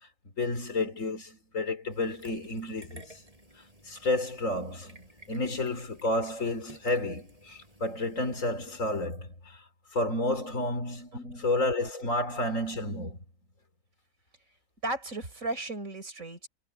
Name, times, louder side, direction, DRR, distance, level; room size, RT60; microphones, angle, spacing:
voice 1, 0.4-3.2 3.6-9.6 9.9-13.2, left 2 dB, 65° left, 3.6 m, -31 dB
sound 1, 1.9-9.1, right 1 dB, 25° right, 7.9 m, -55 dB
voice 2, 11.1-11.5 14.8-16.5, right 2 dB, 65° right, 5.1 m, -35 dB
omnidirectional pair, 1.5 m